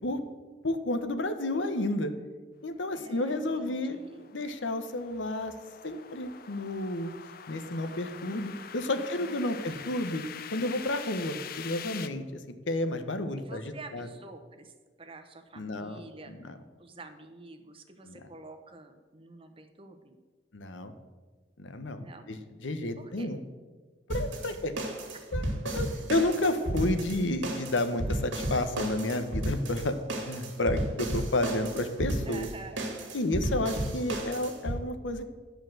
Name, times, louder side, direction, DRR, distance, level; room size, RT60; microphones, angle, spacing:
voice 1, 0.6-2.1 2.6-4.0 4.3-5.5 5.8-7.1 7.5-10.2 10.5-12.2 12.7-13.6 13.9-14.1 15.6-16.0 18.0-18.2 20.5-20.9 21.6-22.4 22.6-23.4 24.1-24.7 25.3-29.9 30.3-32.5 33.1-35.3, left 1 dB, 85° left, 9 dB, 0.9 m, -31 dB
voice 2, 2.9-4.4 9.0-10.1 13.4-16.5 16.8-20.2 22.0-22.3 23.0-23.3 24.5-24.6 25.1-25.2 32.3-32.8, right 2 dB, 30° right, 7 dB, 0.9 m, -48 dB
sound 1, 3.0-12.1, left 8 dB, 50° left, 0.5 m, -45 dB
sound 2, 24.1-34.8, right 1 dB, 80° right, 2.0 m, -33 dB
10.5 x 5.1 x 7.6 m, 1.4 s
head